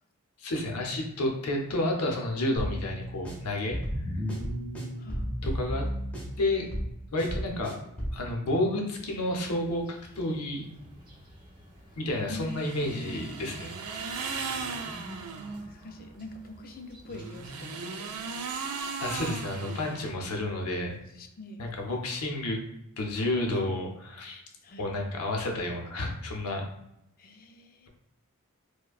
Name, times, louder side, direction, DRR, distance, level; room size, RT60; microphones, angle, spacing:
voice 1, 0.4-3.8 4.1-4.2 5.4-5.9 6.4-6.7 7.1-7.8 8.1-9.9 10.2-10.6 12.0-14.0 19.0-21.0 21.6-22.6 23.0-24.4 24.8-26.6, left 1 dB, 85° left, 1 dB, 0.7 m, -30 dB
sound 1, 2.6-8.2, equal, 5° left, 0.8 m, -33 dB
voice 2, 5.0-5.3 11.9-13.6 15.6-18.5 19.5-20.1 21.0-21.6 24.6-24.9 27.2-27.9, left 1 dB, 40° left, 6 dB, 0.4 m, -45 dB
sound 2, 8.9-17.6, right 1 dB, 20° right, 0.9 m, -50 dB
sound 3, 12.5-15.6 17.0-20.4, right 5 dB, 80° right, 0.4 m, -37 dB
4.7 x 2.2 x 2.4 m, 0.83 s
head